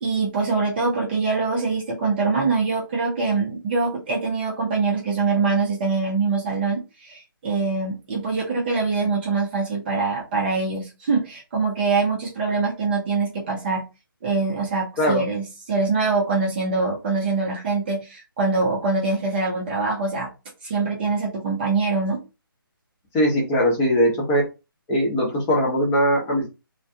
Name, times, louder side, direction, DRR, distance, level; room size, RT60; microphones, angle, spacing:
voice 1, 0.0-13.8 14.2-20.3 20.6-22.2, right 4 dB, 25° right, -3 dB, 0.7 m, -24 dB
voice 2, 23.1-24.4 24.9-26.5, equal, 15° left, -3 dB, 0.8 m, -20 dB
2.4 x 2.2 x 2.7 m, 0.28 s
figure-of-eight pair, 155°, 12 cm